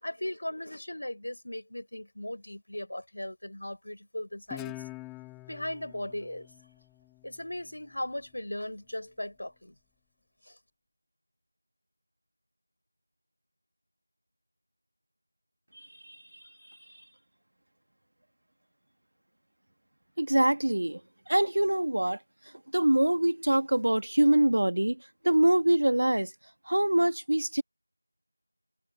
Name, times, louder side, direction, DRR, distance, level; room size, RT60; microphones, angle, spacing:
voice 1, 0.0-4.8 5.5-6.5 7.2-9.7 10.5-10.6, left 1 dB, 50° left, 4.3 m, -37 dB
Guitar, 4.5-7.7, left 22 dB, 5° left, 0.3 m, -45 dB
voice 2, 15.7-16.2 20.2-21.0 21.3-22.2 22.7-25.0 25.2-26.3 26.7-27.6, right 1 dB, 45° right, 1.5 m, -24 dB
figure-of-eight pair, 175°, 0 cm